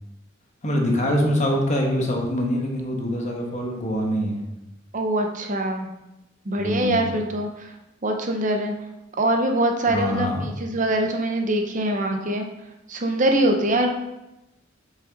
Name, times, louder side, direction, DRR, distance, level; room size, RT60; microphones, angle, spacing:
voice 1, 0.6-4.4 6.6-7.1 9.9-10.5, equal, 35° left, 1 dB, 1.2 m, -24 dB
voice 2, 4.9-5.9 6.5-7.7 8.0-8.7 9.2-12.5 12.9-13.9, right 1 dB, 40° right, 4 dB, 0.7 m, -23 dB
6.2 x 5.3 x 3.9 m, 0.94 s
head